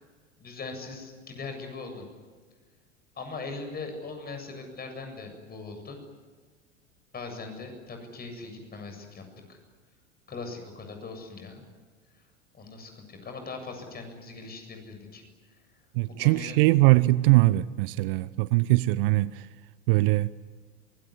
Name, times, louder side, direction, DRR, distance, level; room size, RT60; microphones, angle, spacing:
voice 1, 0.4-2.0 3.1-6.0 7.1-9.6 10.3-11.6 12.1-12.2 12.5-15.2 15.5-15.6 16.0-16.6, left 3 dB, 25° left, 7.7 m, -40 dB
voice 2, 16.0-19.5 19.9-20.3, right 20 dB, 50° right, 0.7 m, -21 dB
24.0 x 22.0 x 9.9 m
figure-of-eight pair, 80°, 36 cm